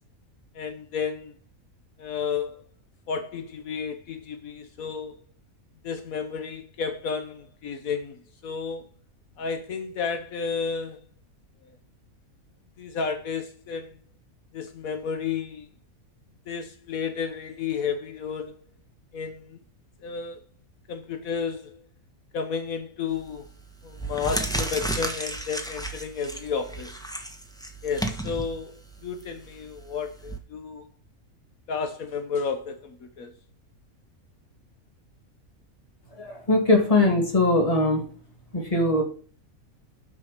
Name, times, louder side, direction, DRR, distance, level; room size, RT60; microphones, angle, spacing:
voice 1, 0.5-1.3 2.0-2.6 3.1-5.3 5.8-8.9 9.4-11.0 12.8-14.0 14.5-15.7 16.5-18.6 19.1-19.6 20.0-20.4 20.9-21.9 22.3-23.5 23.8-27.0 27.8-30.9 31.7-33.3, left 6 dB, 75° left, 1.4 m, -32 dB
sound 1, 23.1-23.4 23.9-30.4, right 1 dB, 5° left, 1.2 m, -33 dB
voice 2, 36.2-38.1 38.5-39.0, left 2 dB, 25° left, 2.4 m, -21 dB
8.7 x 6.2 x 6.6 m
omnidirectional pair, 1.5 m